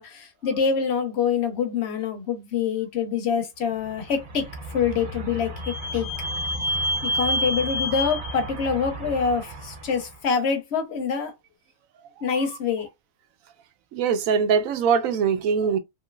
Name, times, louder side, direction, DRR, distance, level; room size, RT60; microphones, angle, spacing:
voice 1, 0.0-4.5 4.7-5.5 5.9-6.1 7.0-11.3 12.2-12.9, left 6 dB, 55° left, 0.9 m, -25 dB
Vehicle / Squeak, 4.2-9.8, equal, 50° right, 1.2 m, -29 dB
voice 2, 13.9-15.8, right 6 dB, 70° right, 1.0 m, -22 dB
3.1 x 2.8 x 2.3 m
omnidirectional pair, 1.6 m